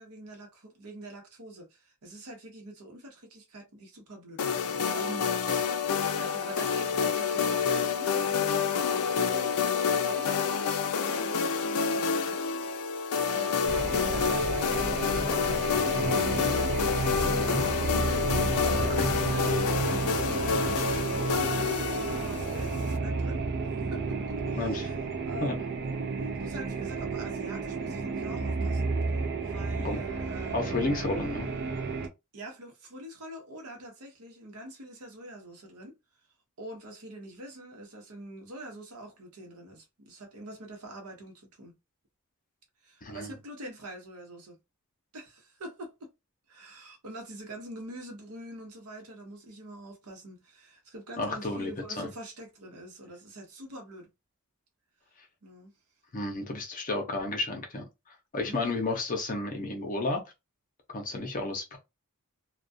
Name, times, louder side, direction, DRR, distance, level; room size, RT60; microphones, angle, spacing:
voice 1, 0.0-5.3 6.0-9.5 9.9-12.7 13.3-15.2 15.5-19.5 19.9-24.2 24.5-25.0 25.2-25.7 26.2-29.0 29.4-30.6 32.3-35.9 36.6-41.7 42.8-44.6 45.1-46.1 46.5-54.1 55.4-55.7 58.4-58.8, right 1 dB, 75° right, 0.8 m, -45 dB
sound 1, 4.4-23.0, left 6 dB, 80° left, 0.4 m, -28 dB
sound 2, 13.6-32.1, right 4 dB, 50° right, 0.4 m, -32 dB
voice 2, 17.4-17.7 18.9-19.1 24.6-24.9 25.4-25.5 29.8-30.0 30.5-31.5 43.0-43.4 51.2-52.1 56.1-57.8 58.3-60.2 60.9-61.8, left 2 dB, 35° left, 0.6 m, -32 dB
2.3 x 2.2 x 2.5 m
head